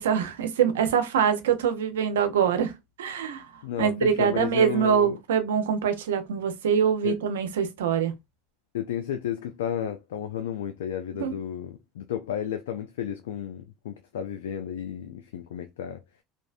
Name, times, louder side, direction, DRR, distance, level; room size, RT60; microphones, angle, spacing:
voice 1, 0.0-2.7 3.0-8.1 11.2-11.3, right 7 dB, 90° right, 0.4 m, -24 dB
voice 2, 3.6-5.2 7.0-7.2 8.7-16.0, left 9 dB, 85° left, 0.3 m, -32 dB
2.6 x 2.1 x 2.3 m
hypercardioid pair, 90°, 0 cm